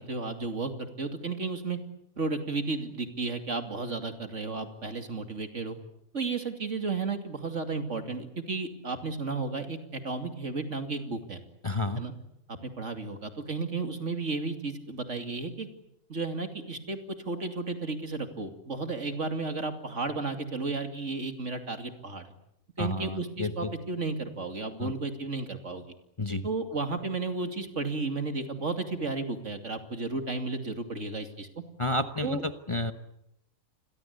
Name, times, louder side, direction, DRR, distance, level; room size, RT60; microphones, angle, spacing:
voice 1, 0.0-1.8 2.2-5.8 6.1-11.4 11.9-12.1 12.5-15.7 16.1-22.3 22.8-25.9 26.4-31.5 32.2-32.4, right 3 dB, 60° right, 7 dB, 3.0 m, -33 dB
voice 2, 11.6-12.0 22.8-23.7 24.8-24.9 26.2-26.5 31.8-32.9, left 2 dB, 25° left, 9 dB, 1.0 m, -31 dB
28.5 x 23.0 x 8.4 m, 0.81 s
omnidirectional pair, 1.4 m